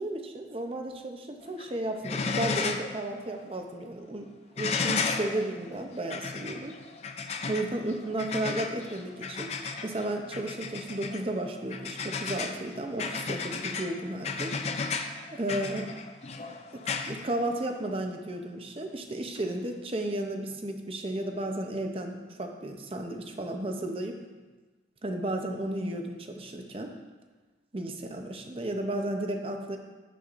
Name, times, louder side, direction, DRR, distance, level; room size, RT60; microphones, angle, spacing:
voice 1, 0.0-4.3 4.6-6.7 7.5-14.5 15.3-15.9 16.7-24.2 25.0-26.9 27.7-29.8, right 1 dB, 30° right, 4 dB, 0.7 m, -33 dB
sound 1, 1.4-1.7 2.0-3.0 3.3-3.4 4.6-17.9 19.4-19.5, left 4 dB, 35° left, 0.4 m, -34 dB
10.0 x 7.9 x 2.5 m, 1.3 s
head